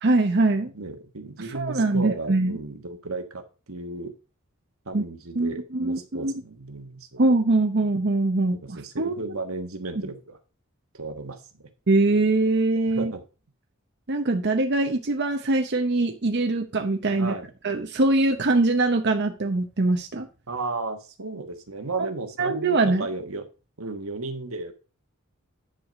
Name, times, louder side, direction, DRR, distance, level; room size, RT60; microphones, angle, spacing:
voice 1, 0.0-0.7 1.4-2.6 4.9-5.0 5.4-6.3 7.2-9.3 11.9-13.1 14.1-17.3 17.6-20.3 22.4-23.0, right 2 dB, 55° right, 5 dB, 0.8 m, -23 dB
voice 2, 0.7-4.1 4.8-7.2 8.6-10.4 10.9-11.6 12.8-13.2 17.2-17.5 20.5-23.5 23.8-24.7, right 3 dB, 85° right, 6 dB, 1.5 m, -34 dB
10.5 x 4.8 x 5.1 m, 0.33 s
head